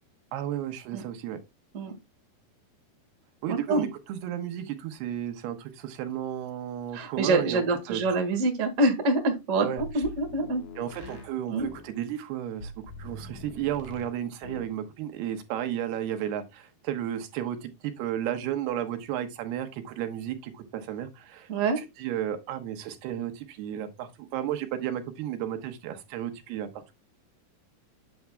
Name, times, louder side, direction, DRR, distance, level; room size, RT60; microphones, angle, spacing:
voice 1, 0.3-1.4 1.9-2.0 3.4-8.2 9.6-10.0 10.8-21.5 21.8-26.9, right 10 dB, 85° right, 3.1 m, -33 dB
voice 2, 3.5-3.9 6.9-10.6 11.5-11.7 21.5-21.8, right 2 dB, 65° right, 0.7 m, -26 dB
sound 1, 9.8-11.9 12.6-14.2 14.4-14.8, left 1 dB, 60° left, 2.4 m, -43 dB
9.3 x 7.2 x 2.2 m
omnidirectional pair, 4.5 m